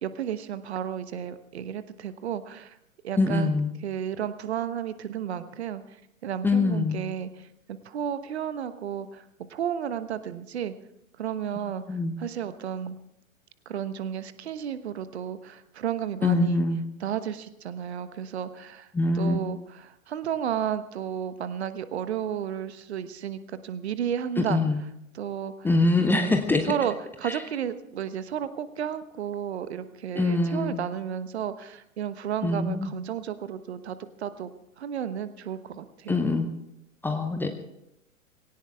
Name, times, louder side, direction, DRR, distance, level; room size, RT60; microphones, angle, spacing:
voice 1, 0.0-2.8 3.0-3.5 3.8-9.2 9.5-10.7 11.2-13.0 13.6-16.6 17.0-24.6 25.1-25.7 26.0-26.4 26.7-34.5 34.8-36.2, right 9 dB, 50° right, 12 dB, 1.2 m, -33 dB
voice 2, 3.2-3.7 6.4-7.0 11.9-12.1 16.2-16.8 18.9-19.4 24.4-24.8 25.6-26.7 27.2-27.4 30.1-30.8 32.4-32.9 36.1-36.5 37.0-37.5, left 2 dB, 5° left, 6 dB, 0.7 m, -24 dB
20.5 x 17.5 x 3.5 m, 0.83 s
figure-of-eight pair, 110°, 41 cm